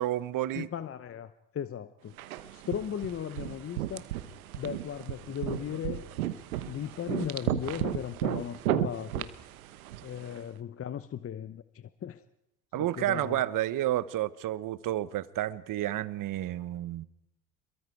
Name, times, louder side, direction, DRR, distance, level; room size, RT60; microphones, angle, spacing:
voice 1, 0.0-0.7 12.7-17.1, right 14 dB, 50° right, 1.2 m, -30 dB
voice 2, 0.5-2.1 2.5-4.1 4.6-6.1 6.6-9.3 10.0-12.2 12.7-13.4, left 9 dB, 35° left, 1.0 m, -37 dB
sound 1, 2.2-10.4, right 13 dB, 85° right, 1.2 m, -34 dB
28.5 x 22.5 x 4.7 m
hypercardioid pair, 70°, 42 cm